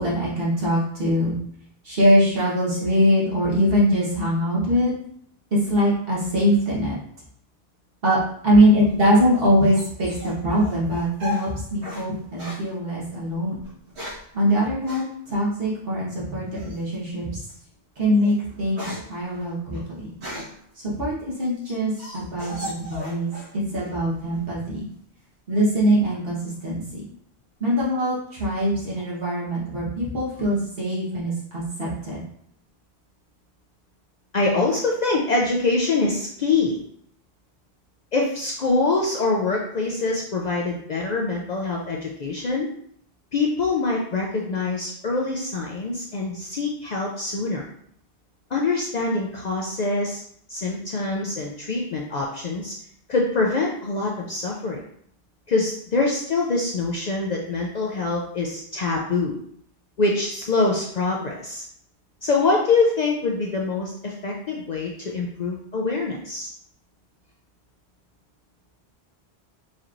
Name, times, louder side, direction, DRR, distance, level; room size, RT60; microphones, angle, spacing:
voice 1, 0.0-1.4 1.8-4.9 5.5-6.9 8.0-13.6 14.3-17.3 18.0-18.8 19.1-20.1 21.0-24.9 25.5-26.4 26.6-27.0 27.6-32.2, equal, 60° right, -6 dB, 1.4 m, -22 dB
sound 1, 8.8-12.1 12.4-12.7 13.6-14.3 14.8-15.1 16.5-16.9 17.5-17.6 18.0-20.7 21.2-23.5 23.8-24.4, left 1 dB, 80° right, 1.7 m, -37 dB
voice 2, 34.3-36.8 38.1-42.7 43.3-47.7 48.5-50.2 50.5-52.7 53.1-54.8 55.5-59.4 60.0-61.6 62.2-66.5, left 3 dB, 55° left, -1 dB, 0.5 m, -24 dB
4.2 x 3.0 x 2.5 m, 0.68 s
omnidirectional pair, 1.1 m